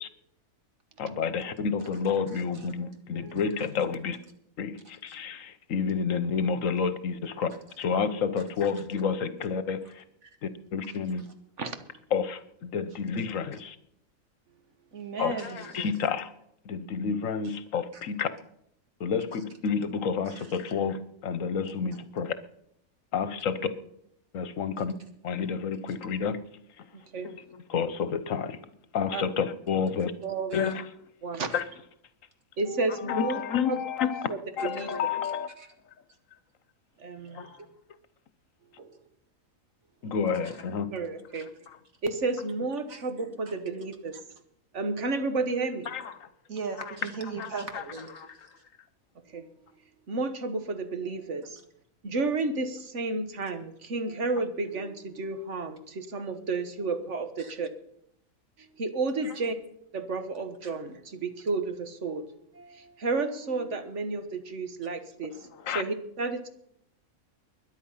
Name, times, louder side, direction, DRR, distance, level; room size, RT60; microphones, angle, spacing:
voice 1, 1.0-4.2 4.6-7.5 7.8-10.0 10.4-11.2 12.1-13.8 15.2-15.3 15.7-16.3 16.6-18.3 19.0-22.3 23.1-23.7 24.3-24.9 25.2-26.4 26.8-26.9 27.2-28.6 28.9-30.1 30.5-30.8 31.5-31.6 32.9-35.5 37.3-37.6 40.0-40.9 41.7-41.8 45.9-46.3 65.6-65.8, left 6 dB, 70° left, 14 dB, 1.3 m, -30 dB
voice 2, 2.3-2.7 3.4-3.7 4.8-5.2 7.5-7.8 10.2-10.4 10.8-11.3 13.5-13.6 14.9-15.9 17.4-17.6 17.9-18.0 19.3-19.4 20.3-20.6 24.8-25.1 25.9-26.0 30.5-30.7 31.5-31.6 35.6-35.7 36.1-36.2 38.8-39.0 40.4-40.6 41.3-41.5 42.9-43.1 43.5-43.6 44.1-44.2 46.5-48.6 57.4-57.5 59.2-59.4 60.6-60.7, right 5 dB, 75° right, 5 dB, 2.4 m, -41 dB
voice 3, 11.6-12.0 26.9-27.3 29.1-29.2 30.2-30.6 31.2-31.5 32.6-33.4 33.7-33.8 34.3-34.9 37.0-37.5 40.0-40.3 40.9-41.5 42.0-44.2 44.7-46.0 49.3-49.5 50.1-51.6 52.0-57.7 58.6-59.6 59.9-62.3 62.5-66.5, right 3 dB, 60° right, 9 dB, 1.6 m, -32 dB
21.5 x 10.0 x 5.7 m, 0.76 s
omnidirectional pair, 1.4 m